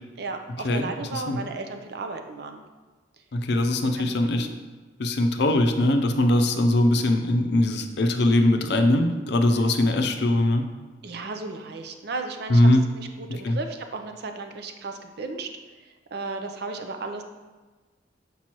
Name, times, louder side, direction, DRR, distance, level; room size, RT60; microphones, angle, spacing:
voice 1, 0.2-2.6 4.0-4.6 11.0-12.7 13.0-15.5 15.8-17.2, right 3 dB, 60° right, 5 dB, 0.5 m, -35 dB
voice 2, 3.3-4.5 5.0-10.7 12.5-12.8 13.3-13.6, left 1 dB, 65° left, 5 dB, 0.5 m, -21 dB
6.1 x 5.4 x 3.0 m, 1.3 s
head